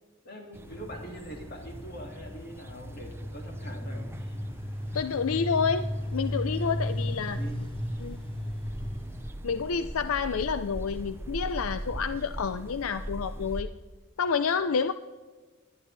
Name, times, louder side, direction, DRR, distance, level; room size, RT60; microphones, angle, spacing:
voice 1, 0.2-4.4 7.3-7.7, equal, 50° left, 2 dB, 2.4 m, -43 dB
sound 1, 0.5-13.6, right 1 dB, 10° right, 0.6 m, -42 dB
sound 2, 0.7-9.2, equal, 25° left, 1.4 m, -35 dB
voice 2, 4.9-7.4 8.0-8.2 9.4-13.7 14.2-14.9, left 6 dB, 80° left, 11 dB, 0.5 m, -29 dB
20.5 x 10.5 x 3.3 m, 1.3 s
head